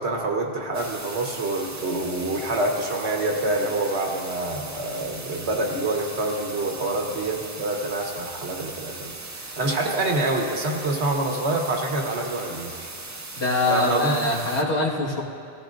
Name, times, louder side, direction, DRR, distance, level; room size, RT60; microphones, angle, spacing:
voice 1, 0.0-12.7 13.6-14.3, right 2 dB, 75° right, 1 dB, 1.6 m, -26 dB
sound 1, 0.7-14.6, right 2 dB, 25° right, 0.4 m, -38 dB
voice 2, 13.4-15.2, left 2 dB, 80° left, -4 dB, 2.0 m, -23 dB
20.0 x 15.0 x 2.6 m, 2.4 s
omnidirectional pair, 1.1 m